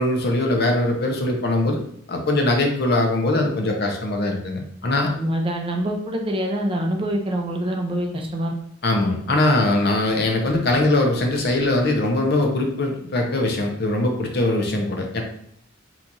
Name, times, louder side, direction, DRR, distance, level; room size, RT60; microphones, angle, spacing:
voice 1, 0.0-1.8 2.1-5.1 8.8-15.2, left 2 dB, 55° left, 2 dB, 0.7 m, -21 dB
voice 2, 5.0-8.5, right 1 dB, 30° right, 1 dB, 0.5 m, -25 dB
2.9 x 2.4 x 3.9 m, 0.70 s
head